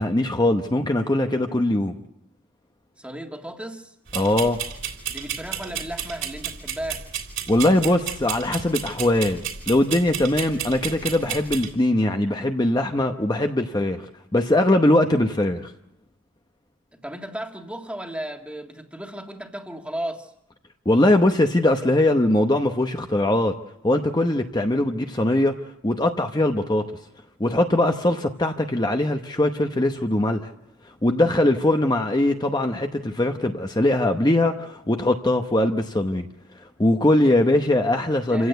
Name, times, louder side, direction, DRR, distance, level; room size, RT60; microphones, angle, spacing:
voice 1, 0.0-2.0 4.1-4.6 7.5-14.1 14.3-15.7 20.9-23.5 23.8-25.5 25.8-26.8 27.4-30.5 31.0-36.3 36.8-38.5, left 1 dB, 20° left, 0.9 m, -21 dB
voice 2, 3.0-3.9 5.1-7.1 16.9-20.3 38.3-38.5, right 1 dB, 5° right, 1.8 m, -34 dB
sound 1, 4.1-11.7, right 9 dB, 60° right, 3.4 m, -33 dB
28.0 x 16.0 x 8.1 m
head